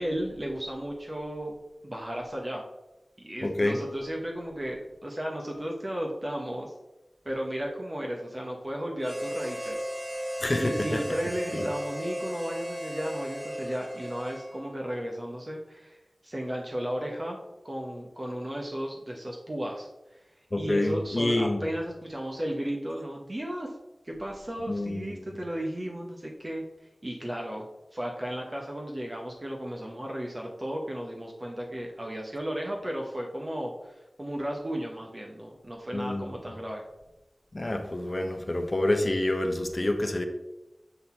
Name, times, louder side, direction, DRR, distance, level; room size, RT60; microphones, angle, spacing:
voice 1, 0.0-1.5 1.8-2.6 3.2-6.7 7.2-9.8 10.1-17.4 17.6-20.2 20.6-23.7 24.0-26.6 27.0-27.7 27.9-36.8, equal, 40° right, -1 dB, 1.0 m, -34 dB
voice 2, 3.4-3.8 10.4-11.0 11.5-11.6 20.5-21.6 24.7-25.1 35.9-36.2 37.5-40.2, left 1 dB, 45° left, 6 dB, 0.8 m, -27 dB
Harmonica, 9.0-14.8, equal, 15° right, 1.2 m, -35 dB
7.9 x 4.0 x 4.4 m, 0.99 s
wide cardioid pair, 50°, 0 cm